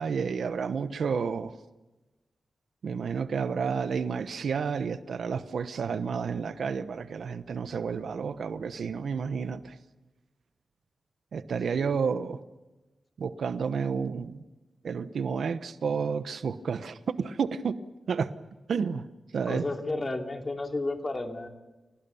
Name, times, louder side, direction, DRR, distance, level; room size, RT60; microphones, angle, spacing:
voice 1, 0.0-1.6 2.8-9.8 11.3-12.4 13.2-14.4 14.8-17.8 18.1-18.3 18.7-19.1 19.3-19.6, right 6 dB, 85° right, 12 dB, 1.0 m, -30 dB
voice 2, 19.5-21.5, left 2 dB, 35° left, 4 dB, 2.9 m, -32 dB
29.5 x 18.0 x 7.1 m, 1.1 s
wide cardioid pair, 95°, 0 cm